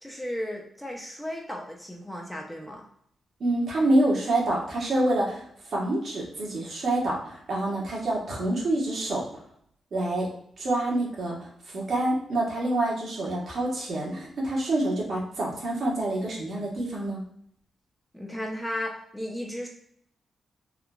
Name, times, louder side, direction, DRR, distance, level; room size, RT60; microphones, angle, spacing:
voice 1, 0.0-2.8 18.1-19.7, equal, 5° left, 0 dB, 0.6 m, -35 dB
voice 2, 3.4-5.4 5.7-9.2 9.9-10.3 10.6-11.5 11.7-17.2, right 1 dB, 60° right, -4 dB, 1.2 m, -27 dB
3.7 x 2.5 x 2.3 m, 0.68 s
cardioid pair, 85°, 0 cm